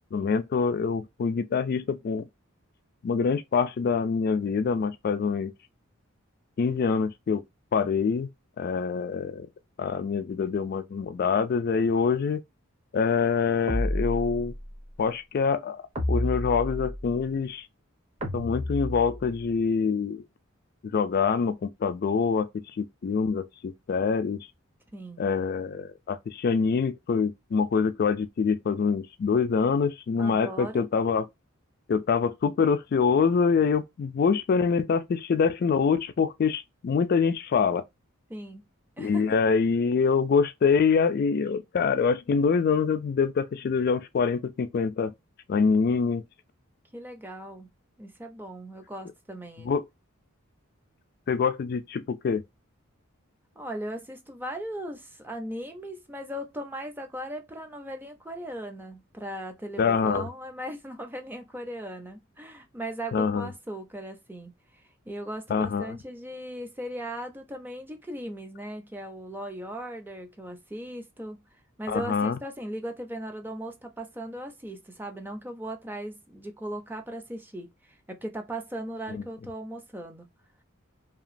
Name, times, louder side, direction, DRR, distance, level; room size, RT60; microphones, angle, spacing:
voice 1, 0.1-2.2 3.0-5.5 6.6-7.4 7.7-8.3 8.6-9.5 9.8-12.4 12.9-14.5 15.0-15.8 16.1-17.7 18.3-20.2 20.9-24.5 25.2-31.3 31.9-37.8 39.0-45.1 45.5-46.2 49.6-49.8 51.3-52.4 59.8-60.3 63.1-63.5 65.5-65.9 71.9-72.4 79.1-79.2, left 5 dB, 45° left, 0.3 m, -25 dB
sound 1, 13.7-14.8 16.0-17.2 18.2-19.5, left 1 dB, 30° right, 0.8 m, -31 dB
voice 2, 24.9-25.2 30.2-30.8 38.3-38.7 39.0-39.3 46.9-47.7 48.0-49.7 53.6-71.4 71.8-80.3, right 1 dB, 10° right, 0.5 m, -38 dB
2.9 x 2.4 x 2.5 m
head